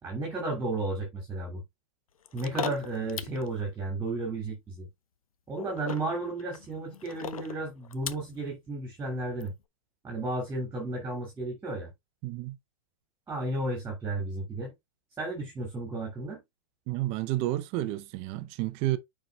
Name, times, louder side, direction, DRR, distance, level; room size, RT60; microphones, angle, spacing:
voice 1, 0.0-1.6 2.3-4.9 5.5-9.5 10.0-11.9 13.3-14.7 15.2-16.4, right 2 dB, 15° right, 2.4 m, -33 dB
sound 1, 2.3-3.5 5.6-8.4 9.4-9.5, left 8 dB, 80° left, 0.7 m, -37 dB
voice 2, 12.2-12.6 16.9-19.0, right 16 dB, 35° right, 0.6 m, -30 dB
9.2 x 4.8 x 2.3 m
hypercardioid pair, 125°, 18 cm